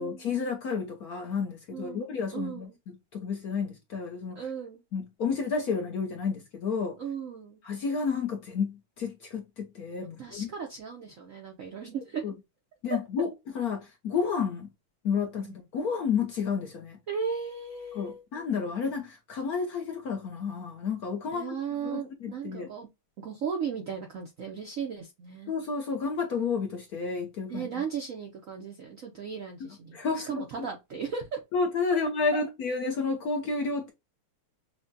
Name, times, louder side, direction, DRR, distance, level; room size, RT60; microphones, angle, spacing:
voice 1, 0.0-4.3 4.9-7.0 7.6-10.5 12.2-12.3 12.8-13.3 13.5-14.7 15.0-17.0 18.0-21.6 21.8-22.7 25.5-27.7 29.6-30.7 31.5-33.9, left 5 dB, 60° left, 1.0 m, -31 dB
voice 2, 1.7-2.8 4.3-4.8 7.0-7.6 10.0-12.2 12.9-13.0 15.4-15.6 17.1-18.2 21.3-22.9 23.2-25.5 27.5-30.0 30.3-31.4 31.9-32.0 32.3-32.4, right 6 dB, 65° right, 0.8 m, -36 dB
5.9 x 2.2 x 2.6 m
omnidirectional pair, 2.3 m